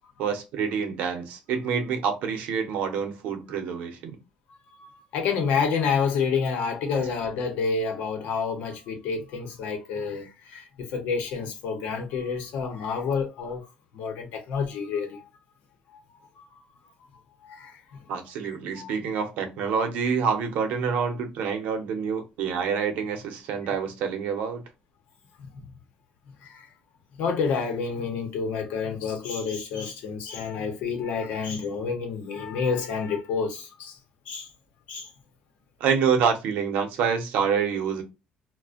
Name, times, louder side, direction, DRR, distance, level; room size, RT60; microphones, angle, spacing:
voice 1, 0.2-4.2 7.0-7.1 18.1-24.6 35.8-38.0, right 6 dB, 80° right, 0.6 m, -27 dB
voice 2, 4.8-13.7 13.9-15.2 16.4-16.5 17.5-17.8 18.4-18.9 25.4-25.6 26.4-26.7 27.2-34.0 34.3-34.5 34.9-35.1, left 5 dB, 90° left, 0.7 m, -29 dB
2.4 x 2.1 x 2.4 m
cardioid pair, 150°, 3 cm